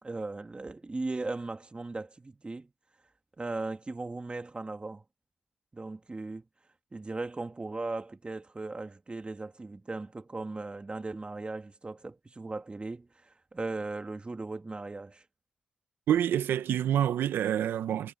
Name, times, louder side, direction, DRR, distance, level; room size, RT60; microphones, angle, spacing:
voice 1, 0.0-2.7 3.4-5.0 5.7-6.4 6.9-15.2, right 3 dB, 30° right, 2.6 m, -38 dB
voice 2, 16.1-18.1, right 10 dB, 85° right, 1.0 m, -27 dB
cardioid pair, 55°, 4 cm